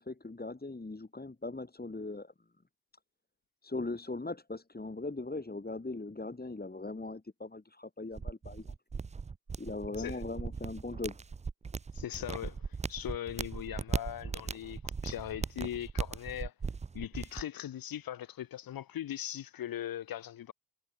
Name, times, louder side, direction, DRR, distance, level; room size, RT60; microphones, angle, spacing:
voice 1, 0.0-2.3 3.6-8.7 9.6-11.2, left 2 dB, 25° left, 2.7 m, -39 dB
sound 1, 8.2-17.4, right 5 dB, 20° right, 0.4 m, -38 dB
voice 2, 11.9-16.5 16.9-20.5, left 11 dB, 65° left, 0.8 m, -40 dB
supercardioid pair, 40°, 38 cm